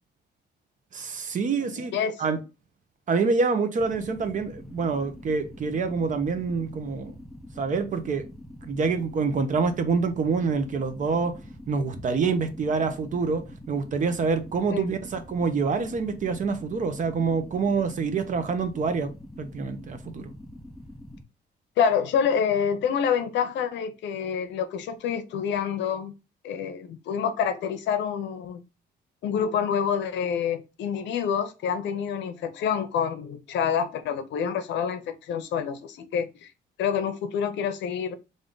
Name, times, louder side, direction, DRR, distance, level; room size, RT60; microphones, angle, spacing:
voice 1, 0.9-1.9 2.2-2.4 3.1-7.2 7.6-8.3 8.6-11.4 11.7-19.1 19.4-20.3, right 4 dB, 45° right, 0.7 m, -26 dB
voice 2, 1.6-2.1 14.7-14.9 21.8-26.1 26.4-28.6 29.2-36.5 36.8-38.2, left 7 dB, 80° left, 0.6 m, -27 dB
sound 1, 3.8-21.2, left 1 dB, ahead, 0.4 m, -44 dB
3.5 x 2.5 x 3.8 m
cardioid pair, 130°, 18 cm